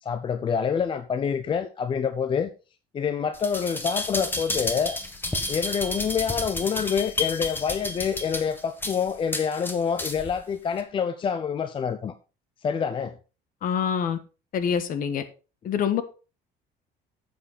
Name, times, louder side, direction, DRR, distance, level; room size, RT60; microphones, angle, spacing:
voice 1, 0.0-2.5 2.9-5.0 5.5-12.1 12.6-13.1, left 7 dB, 25° left, 0.5 m, -27 dB
sound 1, 3.3-10.3 10.8-10.9, left 2 dB, 10° left, 1.4 m, -31 dB
voice 2, 13.6-14.2 14.5-15.2 15.6-16.0, left 7 dB, 50° left, 1.4 m, -25 dB
10.5 x 7.8 x 4.1 m
cardioid pair, 150°, 19 cm